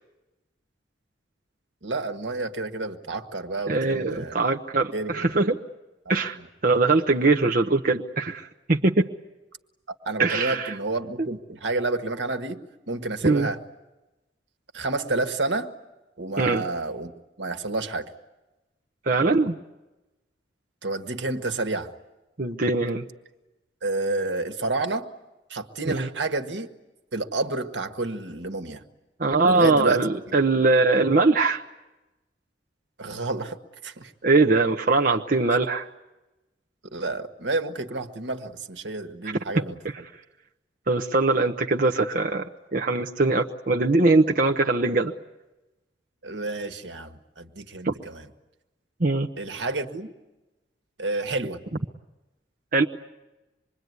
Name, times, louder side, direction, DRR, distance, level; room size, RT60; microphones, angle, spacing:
voice 1, 1.8-4.3 4.9-5.4 6.4-6.5 9.9-13.6 14.7-15.7 16.2-18.1 20.8-21.9 23.8-25.1 25.5-26.7 27.1-28.8 29.5-30.4 33.0-34.1 36.9-39.8 46.2-48.3 49.4-50.1 51.0-51.6, right 2 dB, 80° right, 7 dB, 1.7 m, -30 dB
voice 2, 3.7-5.6 6.1-6.4 6.6-9.1 10.2-10.7 13.2-13.5 16.4-16.7 19.1-19.6 22.4-23.0 25.9-26.1 29.2-31.6 34.2-35.9 40.9-42.5 42.7-45.1 47.8-47.9 49.0-49.3 52.7-52.8, right 3 dB, 50° right, 2 dB, 1.0 m, -21 dB
26.0 x 22.5 x 9.6 m, 1.0 s
head